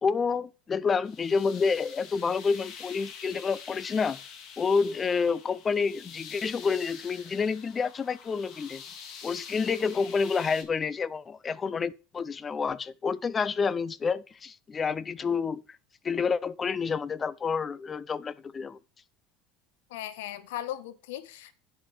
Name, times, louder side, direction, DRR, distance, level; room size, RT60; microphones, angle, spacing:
voice 1, 0.0-4.2 4.6-8.8 9.2-15.6 16.0-18.8, left 5 dB, 20° left, 0.4 m, -28 dB
sound 1, 1.0-10.6, left 7 dB, 40° left, 1.9 m, -46 dB
voice 2, 19.9-21.5, left 12 dB, 90° left, 1.1 m, -37 dB
10.0 x 7.6 x 3.2 m
supercardioid pair, 155°, 0 cm